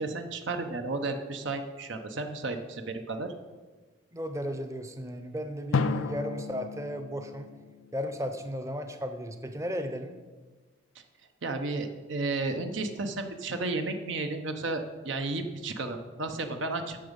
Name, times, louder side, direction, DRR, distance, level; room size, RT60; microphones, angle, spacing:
voice 1, 0.0-3.3 11.4-17.0, right 3 dB, 70° right, 6 dB, 0.8 m, -33 dB
voice 2, 4.1-7.5 7.9-10.2, equal, 15° right, 7 dB, 0.7 m, -35 dB
Drum, 5.7-8.4, left 4 dB, 90° left, 0.5 m, -33 dB
10.0 x 7.0 x 5.2 m, 1.3 s
head